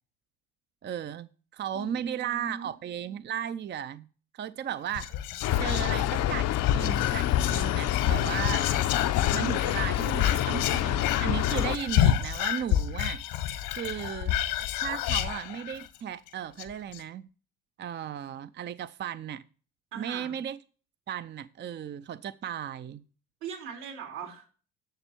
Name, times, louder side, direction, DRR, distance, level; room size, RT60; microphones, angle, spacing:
voice 1, 0.8-4.1 4.3-5.1 5.6-6.5 6.7-8.7 9.3-13.2 13.7-14.4 14.8-17.2 17.8-19.4 19.9-20.6 21.1-23.0, right 9 dB, 30° right, 0.5 m, -35 dB
voice 2, 1.7-2.7 19.9-20.4 23.4-24.5, right 6 dB, 80° right, 3.8 m, -40 dB
Whispering, 4.9-16.0 16.3-16.4 16.6-17.0, left 11 dB, 75° left, 1.3 m, -29 dB
sound 1, 5.4-11.8, left 12 dB, 50° left, 0.6 m, -28 dB
11.5 x 6.7 x 4.5 m
supercardioid pair, 80°, 34 cm